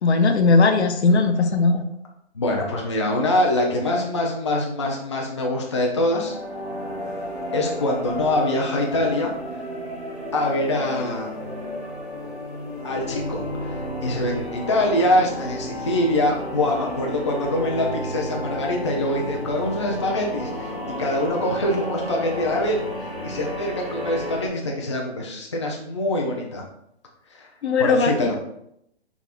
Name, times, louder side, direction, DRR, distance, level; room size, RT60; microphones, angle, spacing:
voice 1, 0.0-1.8 27.6-28.3, left 4 dB, 75° left, 6 dB, 0.8 m, -18 dB
voice 2, 2.3-6.3 7.5-9.3 10.3-11.5 12.8-26.6 27.3-27.5 27.8-28.3, left 1 dB, 25° left, -1 dB, 0.4 m, -24 dB
sound 1, 6.1-24.5, equal, 5° right, 0.7 m, -32 dB
5.8 x 3.5 x 2.4 m, 0.76 s
hypercardioid pair, 170°, 33 cm